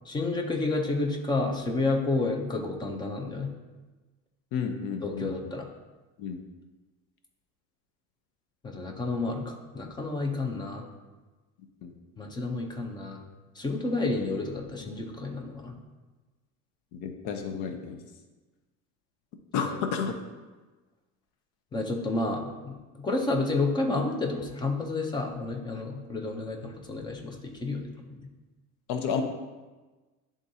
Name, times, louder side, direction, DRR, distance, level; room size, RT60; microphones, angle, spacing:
voice 1, 0.1-3.5 5.0-5.7 8.6-10.8 12.2-13.2 13.6-15.7 19.6-19.7 21.7-28.2, left 3 dB, 15° left, 3 dB, 0.5 m, -30 dB
voice 2, 4.5-5.5 6.2-6.4 11.8-11.9 16.9-18.0 19.5-20.1 28.9-29.2, left 6 dB, 75° left, 6 dB, 0.7 m, -31 dB
10.5 x 3.7 x 2.7 m, 1.2 s
cardioid pair, 170°, 33 cm